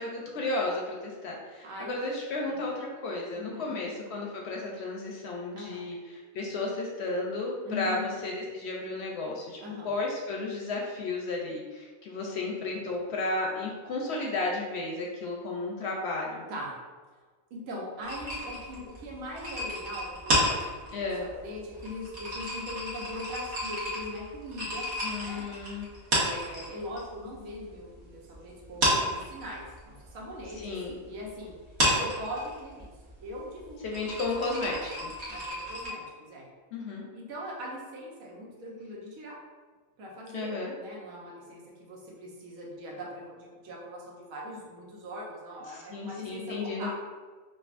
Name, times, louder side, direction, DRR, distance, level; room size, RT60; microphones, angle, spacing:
voice 1, 0.0-9.6 9.8-16.4 20.9-21.3 25.0-25.9 30.6-31.0 33.8-35.1 36.7-37.1 40.3-40.7 45.7-46.9, left 2 dB, 65° left, -1 dB, 0.7 m, -33 dB
voice 2, 1.6-1.9 2.5-2.6 3.3-3.7 5.5-5.8 7.6-8.1 9.6-9.9 16.5-16.8 17.5-24.9 25.1-25.4 26.1-30.8 31.0-31.5 31.8-32.9 33.2-34.8 35.3-36.5 37.1-39.4 40.0-46.9, left 1 dB, 85° right, -3 dB, 1.2 m, -41 dB
sound 1, 18.0-27.0 27.3-28.3 28.6-35.9, equal, 55° right, 1.3 m, -31 dB
4.9 x 2.3 x 2.4 m, 1.4 s
omnidirectional pair, 1.4 m